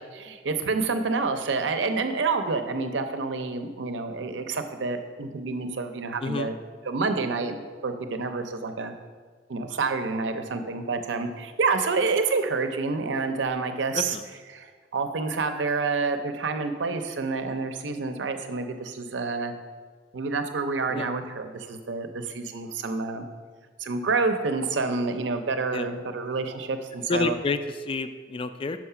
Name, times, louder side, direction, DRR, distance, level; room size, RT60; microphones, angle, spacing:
voice 1, 0.2-6.5 6.8-8.9 9.5-14.2 14.5-19.5 20.1-23.3 23.8-27.4, right 4 dB, 85° right, 7 dB, 0.6 m, -28 dB
voice 2, 13.9-14.2 20.9-21.1 25.7-25.9 27.1-28.8, left 4 dB, 30° left, 10 dB, 0.3 m, -29 dB
6.1 x 4.8 x 5.6 m, 1.5 s
head